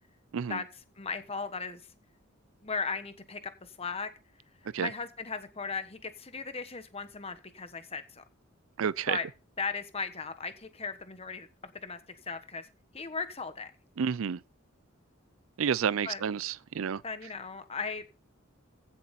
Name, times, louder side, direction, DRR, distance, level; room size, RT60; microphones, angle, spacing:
voice 1, 1.0-1.8 2.6-4.1 4.8-8.2 9.1-9.3 9.6-11.5 11.7-12.7 12.9-13.7 16.0-16.2 17.0-18.2, left 4 dB, 30° left, 1.2 m, -37 dB
voice 2, 8.8-9.2 14.0-14.4 15.6-17.0, right 7 dB, 85° right, 0.4 m, -30 dB
15.5 x 7.1 x 4.2 m
head